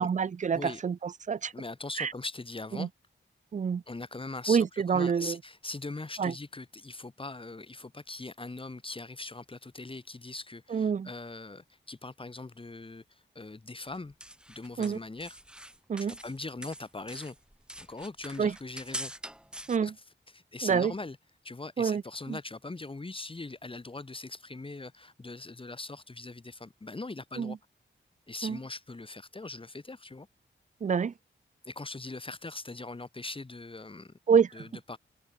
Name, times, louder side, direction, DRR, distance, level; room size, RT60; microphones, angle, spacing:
voice 1, 0.0-1.5 2.0-2.1 2.8-2.9 3.5-3.8 4.5-5.4 6.2-6.3 10.7-11.1 14.8-15.0 15.9-16.2 18.4-18.5 19.7-19.9 20.6-20.9 21.8-22.0 22.3-22.4 27.4-27.6 28.4-28.6 30.8-31.1 34.3-34.7, right 6 dB, 40° right, 0.4 m, -27 dB
voice 2, 1.5-2.9 3.9-14.2 14.5-15.4 16.0-17.4 17.8-19.1 19.8-19.9 20.3-21.2 21.4-27.6 28.3-30.3 31.6-34.1 34.5-35.0, left 2 dB, 25° left, 1.9 m, -41 dB
sound 1, 13.9-16.4 16.6-19.8, right 1 dB, 5° right, 1.2 m, -43 dB
wide cardioid pair, 150°, 20 cm